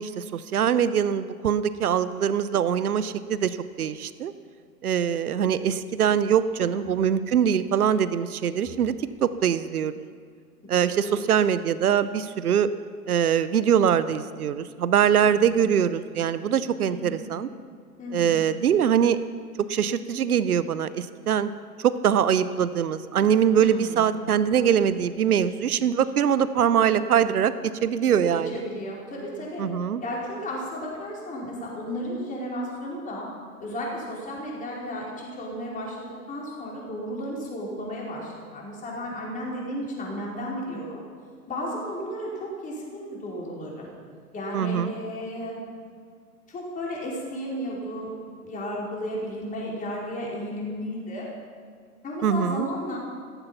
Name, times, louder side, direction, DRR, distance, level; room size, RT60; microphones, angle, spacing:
voice 1, 0.0-4.3 4.8-8.9 9.2-9.9 10.7-12.7 13.1-17.5 18.1-19.2 19.7-21.5 21.8-27.5 27.8-28.5 29.6-30.0 44.5-44.9 52.2-52.7, right 8 dB, 75° right, 14 dB, 0.8 m, -23 dB
voice 2, 6.5-7.0 10.7-11.3 15.3-15.6 16.8-17.2 18.0-18.4 23.5-24.1 28.2-29.7 30.0-33.3 33.6-41.0 41.5-43.9 44.3-45.6 46.5-48.1 48.4-51.3 52.0-53.0, equal, 15° left, -4 dB, 4.7 m, -34 dB
15.5 x 14.0 x 5.8 m, 2.1 s
figure-of-eight pair, 110°, 46 cm